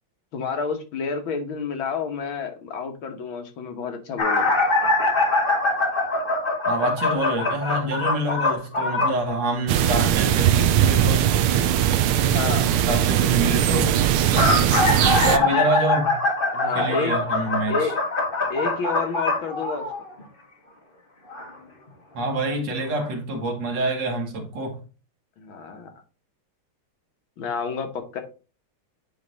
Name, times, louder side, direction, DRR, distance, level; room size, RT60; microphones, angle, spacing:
voice 1, 0.3-4.6 12.3-12.7 14.5-14.9 15.4-15.7 16.5-17.2 17.7-17.9 18.5-19.9 25.4-25.9 27.4-28.2, left 5 dB, 70° left, 1.9 m, -29 dB
sound 1, 4.2-9.2 14.1-20.2 21.3-21.5 22.5-22.6 23.0-23.1, left 2 dB, 30° left, 1.3 m, -23 dB
voice 2, 6.7-11.3 12.8-14.0 15.1-16.1 16.7-17.9 22.1-24.8, right 2 dB, 60° right, 1.8 m, -26 dB
sound 2, 9.7-15.4, right 10 dB, 85° right, 1.6 m, -20 dB
9.1 x 3.2 x 3.9 m
omnidirectional pair, 2.4 m